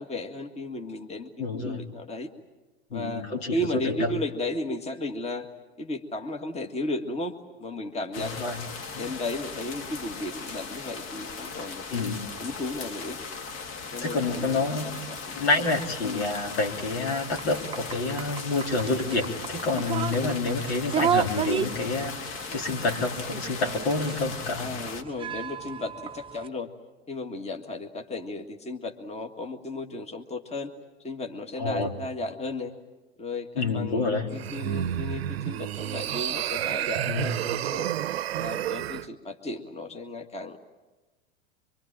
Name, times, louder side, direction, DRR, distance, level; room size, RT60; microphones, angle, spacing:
voice 1, 0.0-2.3 2.9-5.5 5.8-7.3 7.6-8.4 9.0-12.1 12.4-13.2 13.9-15.5 16.0-16.3 20.2-20.3 24.6-26.7 27.1-30.7 31.0-32.7 33.2-37.9 38.3-40.6, left 2 dB, 20° left, 4 dB, 1.9 m, -34 dB
voice 2, 1.4-1.8 2.9-3.6 3.8-4.1 8.2-8.6 8.9-9.2 11.9-12.2 14.0-14.9 15.3-24.7 31.6-31.9 33.6-34.3 37.1-37.4, left 3 dB, 75° left, 1 dB, 3.7 m, -28 dB
sound 1, 8.1-25.0, left 4 dB, 40° left, 1.9 m, -38 dB
sound 2, 17.3-26.5, right 8 dB, 15° right, 0.8 m, -33 dB
sound 3, 34.3-39.1, right 11 dB, 75° right, 0.8 m, -30 dB
25.0 x 24.5 x 8.9 m, 1.2 s
hypercardioid pair, 90°, 31 cm